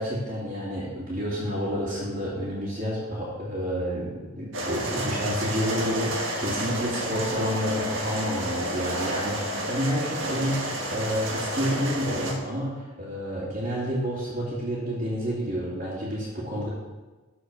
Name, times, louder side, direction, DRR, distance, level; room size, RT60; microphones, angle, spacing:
voice 1, 0.0-16.7, equal, 45° right, -10 dB, 2.6 m, -29 dB
sound 1, 4.5-12.3, right 1 dB, 85° right, 1.6 m, -30 dB
13.0 x 5.0 x 5.4 m, 1.2 s
head